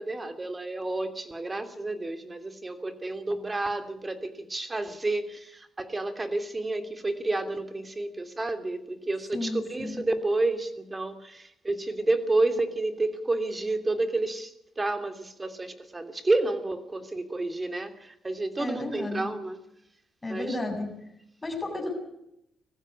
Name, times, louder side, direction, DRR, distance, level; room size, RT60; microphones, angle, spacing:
voice 1, 0.0-19.6 20.3-20.6, right 2 dB, 20° right, 8 dB, 3.0 m, -30 dB
voice 2, 9.3-10.0 18.6-19.3 20.2-20.9 21.4-21.9, left 2 dB, 15° left, 3 dB, 7.7 m, -32 dB
20.0 x 15.5 x 9.8 m, 0.79 s
cardioid pair, 90°, 0 cm